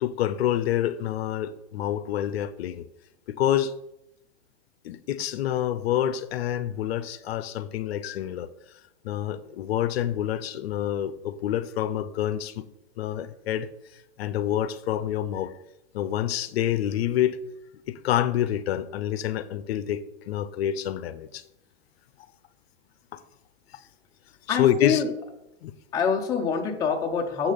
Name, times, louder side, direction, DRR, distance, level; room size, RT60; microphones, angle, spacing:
voice 1, 0.0-2.8 3.3-3.7 4.8-8.5 9.0-12.6 13.0-13.7 14.2-15.5 15.9-17.4 17.9-21.4 23.1-23.2 24.5-25.0 25.6-25.7, left 11 dB, 60° left, 14 dB, 0.7 m, -27 dB
voice 2, 24.5-25.1 25.9-27.5, left 6 dB, 10° left, 1 dB, 0.6 m, -25 dB
7.4 x 5.9 x 5.2 m, 0.86 s
hypercardioid pair, 150°, 36 cm